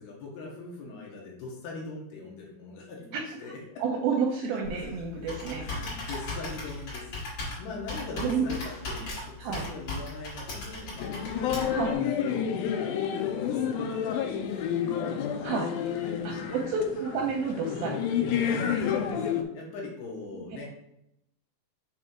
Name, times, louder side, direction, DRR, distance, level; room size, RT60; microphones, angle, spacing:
voice 1, 0.0-3.8 4.4-4.9 5.1-7.2 7.6-15.5 16.0-16.7 18.4-19.2 19.5-20.7, left 3 dB, 70° left, -2 dB, 3.2 m, -42 dB
voice 2, 3.8-5.6 8.2-8.4 9.4-9.7 11.7-11.9 15.4-15.7 16.5-18.8, right 5 dB, 80° right, 0 dB, 2.2 m, -30 dB
Computer keyboard, 4.6-11.9, left 2 dB, 45° left, 3.2 m, -37 dB
sound 1, 11.0-19.4, left 8 dB, 90° left, 2.1 m, -30 dB
7.3 x 3.4 x 4.5 m, 0.81 s
omnidirectional pair, 4.8 m